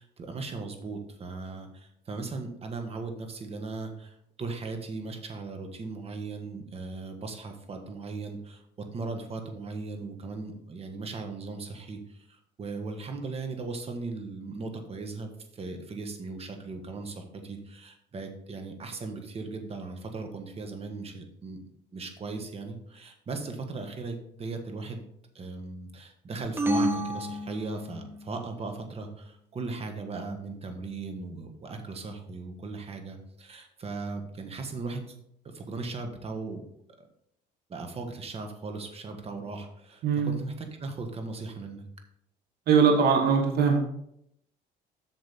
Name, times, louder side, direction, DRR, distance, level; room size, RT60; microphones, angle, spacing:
voice 1, 0.0-12.2 12.6-21.6 21.9-25.0 25.3-35.0 35.4-36.6 37.0-37.1 37.7-41.8, right 3 dB, 35° right, 5 dB, 1.5 m, -38 dB
sound 1, 26.6-28.2, right 1 dB, 15° right, 1.0 m, -29 dB
voice 2, 42.7-43.8, right 6 dB, 70° right, 3 dB, 1.5 m, -21 dB
8.3 x 6.3 x 4.2 m, 0.74 s
cardioid pair, 110°, 17 cm